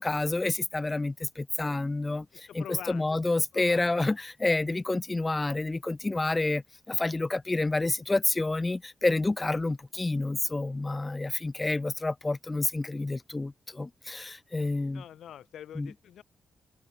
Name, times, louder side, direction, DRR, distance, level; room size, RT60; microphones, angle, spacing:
voice 1, 0.0-6.6 6.9-15.0 15.8-15.9, left 2 dB, 15° left, 0.8 m, -29 dB
voice 2, 2.3-3.2 3.5-4.1 14.9-16.2, left 10 dB, 85° left, 6.3 m, -46 dB
open air
wide cardioid pair, 160°, 0 cm